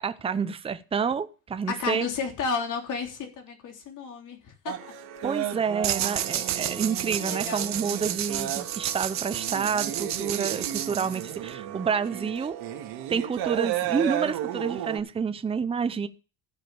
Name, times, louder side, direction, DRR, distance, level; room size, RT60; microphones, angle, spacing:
voice 1, 0.0-2.1 5.2-12.6 13.1-16.1, right 6 dB, 15° right, 0.6 m, -29 dB
voice 2, 1.7-4.9 7.2-7.7, left 5 dB, 55° left, 3.6 m, -32 dB
sound 1, 4.7-15.0, right 11 dB, 90° right, 2.1 m, -34 dB
sound 2, 5.8-11.5, right 11 dB, 45° right, 1.1 m, -31 dB
15.0 x 5.0 x 7.0 m
cardioid pair, 160°, 37 cm